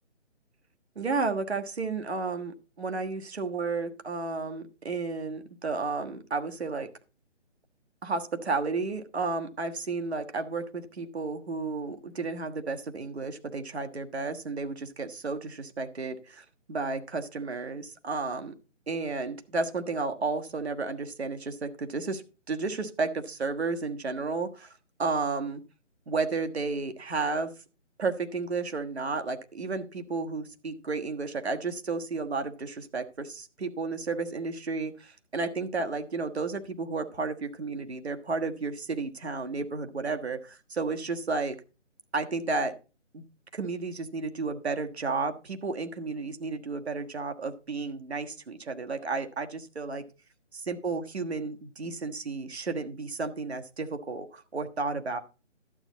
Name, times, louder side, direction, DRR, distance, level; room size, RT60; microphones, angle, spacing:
voice 1, 0.9-6.9 8.0-18.5 18.9-22.2 22.5-24.7 25.0-25.6 26.1-27.5 28.0-41.6 42.1-42.7 43.1-43.2 43.5-50.0 50.5-55.2, right 4 dB, 60° right, 6 dB, 1.5 m, -32 dB
12.0 x 8.1 x 4.0 m, 0.33 s
figure-of-eight pair, 150°, 36 cm